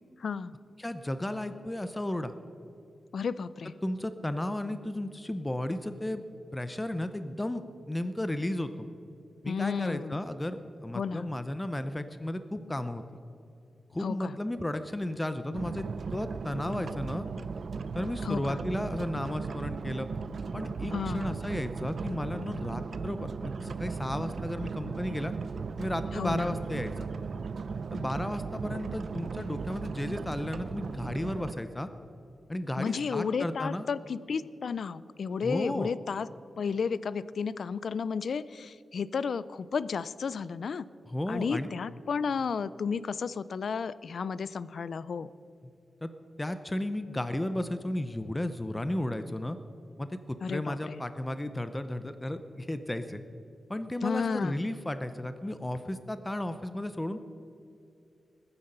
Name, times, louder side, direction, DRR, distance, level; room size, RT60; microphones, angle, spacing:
voice 1, 0.2-0.5 3.1-3.7 9.5-10.2 10.9-11.3 14.0-14.4 18.2-18.6 20.9-21.4 26.1-26.5 32.8-36.3 36.6-40.9 41.3-45.3 50.4-51.0 54.0-54.6, left 5 dB, 60° left, 17 dB, 0.4 m, -32 dB
voice 2, 0.8-2.3 3.8-6.2 6.5-7.6 7.9-8.9 9.4-13.0 13.9-17.2 17.9-20.1 20.5-25.3 25.8-27.1 27.9-31.9 32.5-33.9 35.4-35.9 41.1-41.7 46.0-46.1 46.4-49.6 50.0-53.2 53.7-57.2, left 1 dB, 10° left, 10 dB, 0.6 m, -34 dB
sound 1, 15.5-31.5, right 5 dB, 55° right, 0.5 m, -36 dB
20.5 x 9.8 x 5.5 m, 2.7 s
wide cardioid pair, 140°, 0 cm